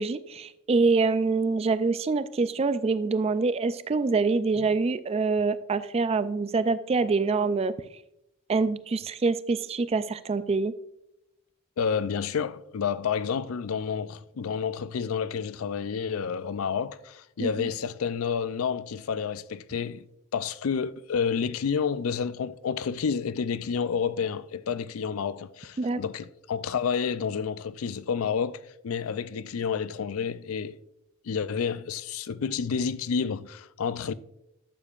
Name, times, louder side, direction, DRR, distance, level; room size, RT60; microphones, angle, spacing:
voice 1, 0.0-7.7 8.5-10.7 17.4-17.7 25.8-26.0, right 4 dB, 30° right, 0.3 m, -25 dB
voice 2, 11.8-20.1 20.3-30.8 31.2-34.1, left 6 dB, 75° left, 0.4 m, -30 dB
11.5 x 6.9 x 2.4 m
head